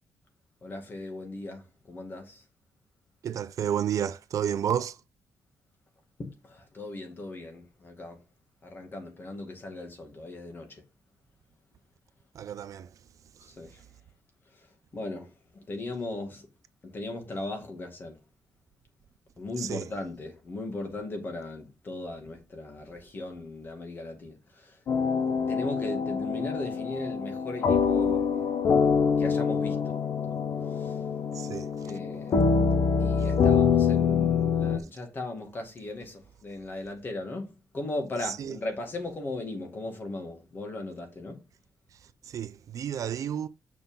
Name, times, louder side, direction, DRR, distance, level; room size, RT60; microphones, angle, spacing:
voice 1, 0.6-1.6 1.9-2.3 6.2-6.3 6.7-8.2 8.6-10.7 13.6-13.7 14.9-15.3 15.7-16.5 16.9-18.1 19.4-24.3 25.5-28.3 29.2-29.9 30.3-30.4 30.8-30.9 31.9-32.6 33.0-37.5 37.7-41.4, left 2 dB, 30° left, 2.1 m, -37 dB
voice 2, 3.2-5.0 12.3-13.1 13.3-13.6 19.6-19.9 31.3-32.0 33.2-33.3 38.2-38.6 41.9-43.5, right 9 dB, 55° right, 0.5 m, -32 dB
sound 1, 24.9-34.8, left 6 dB, 55° left, 0.8 m, -25 dB
7.4 x 6.0 x 3.8 m
cardioid pair, 160°, 7 cm